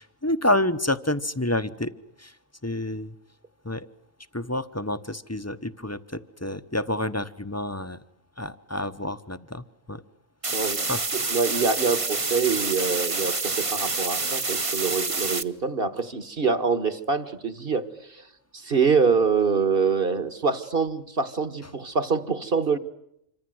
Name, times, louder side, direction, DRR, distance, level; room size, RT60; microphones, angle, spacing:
voice 1, 0.0-1.9 2.2-2.3 2.6-3.1 3.6-3.9 4.3-8.0 8.4-10.0 10.9-11.0, left 1 dB, 15° left, 11 dB, 0.9 m, -28 dB
sound 1, 10.4-15.4, right 3 dB, 25° right, 1.1 m, -27 dB
voice 2, 10.5-10.9 11.1-18.2 18.5-22.8, right 5 dB, 45° right, 10 dB, 1.9 m, -25 dB
27.0 x 25.0 x 7.9 m, 0.77 s
omnidirectional pair, 1.3 m